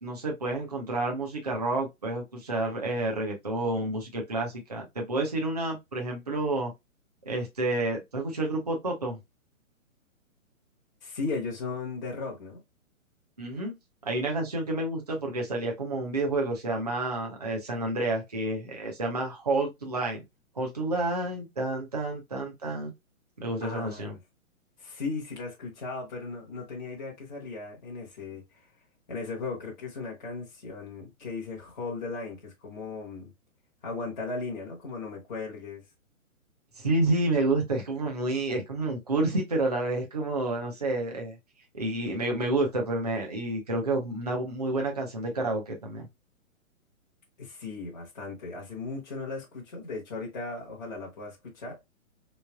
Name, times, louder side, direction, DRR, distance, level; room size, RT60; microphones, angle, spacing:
voice 1, 0.0-6.7 7.2-9.2 13.4-13.7 14.0-20.2 20.6-22.9 23.4-24.1 36.8-41.4 41.7-46.1, right 2 dB, 30° right, 0.5 m, -29 dB
voice 2, 11.0-12.6 23.6-24.1 24.8-28.7 29.1-33.3 33.8-35.9 47.4-51.8, left 3 dB, 35° left, 0.9 m, -37 dB
3.6 x 3.1 x 2.2 m
hypercardioid pair, 180°, 42 cm